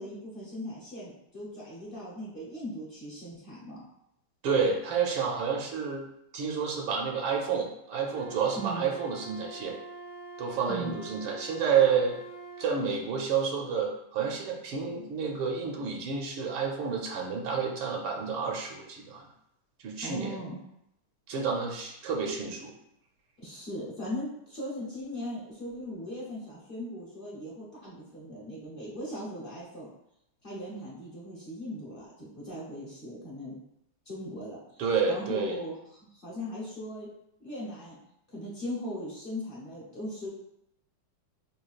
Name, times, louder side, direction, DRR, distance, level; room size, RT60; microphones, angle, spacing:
voice 1, 0.0-3.8 8.6-8.9 10.7-11.0 20.0-20.6 23.4-29.9 30.4-33.6 34.1-35.7 36.1-37.1 37.4-38.0 38.3-40.3, equal, 45° left, -6 dB, 0.7 m, -39 dB
voice 2, 4.4-6.0 6.3-9.7 10.4-12.2 12.6-19.2 19.8-20.4 21.3-22.7 34.8-35.6, right 6 dB, 80° right, 0 dB, 1.5 m, -29 dB
Wind instrument woodwind instrument, 8.1-12.7, right 3 dB, 60° right, 0.5 m, -44 dB
6.2 x 2.3 x 2.4 m, 0.79 s
omnidirectional pair, 2.3 m